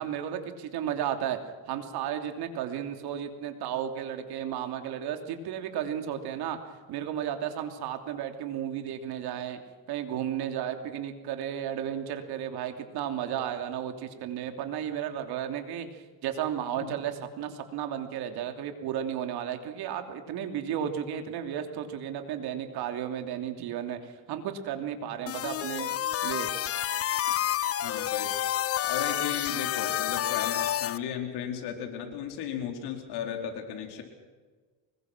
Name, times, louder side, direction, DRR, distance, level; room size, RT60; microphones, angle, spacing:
voice 1, 0.0-1.4 1.7-6.6 6.9-9.6 9.9-26.0 26.2-26.5, right 9 dB, 75° right, 6 dB, 3.2 m, -33 dB
sound 1, 25.3-31.0, left 11 dB, 40° left, 0.6 m, -29 dB
voice 2, 27.8-28.4 28.8-34.0, left 8 dB, 80° left, 3 dB, 4.6 m, -35 dB
25.0 x 21.5 x 6.2 m, 1.4 s
cardioid pair, 120°, 39 cm